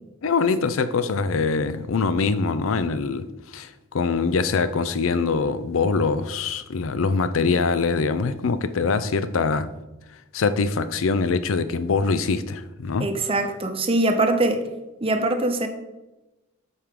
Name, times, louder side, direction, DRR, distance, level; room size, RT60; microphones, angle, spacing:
voice 1, 0.2-3.3 3.5-9.7 10.3-13.1, left 4 dB, 80° left, 13 dB, 0.5 m, -23 dB
voice 2, 13.0-14.6 15.0-15.7, right 2 dB, 30° right, 6 dB, 0.7 m, -22 dB
8.3 x 4.5 x 3.7 m, 1.0 s
head